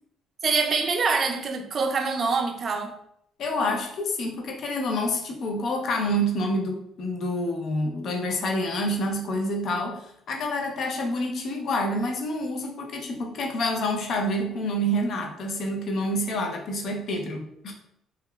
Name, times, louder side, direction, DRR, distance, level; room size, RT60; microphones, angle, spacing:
voice 1, 0.4-2.9, right 4 dB, 50° right, 0.4 m, -25 dB
voice 2, 3.4-17.7, equal, 60° left, 0.5 m, -28 dB
2.8 x 2.3 x 2.2 m
supercardioid pair, 70°, 0 cm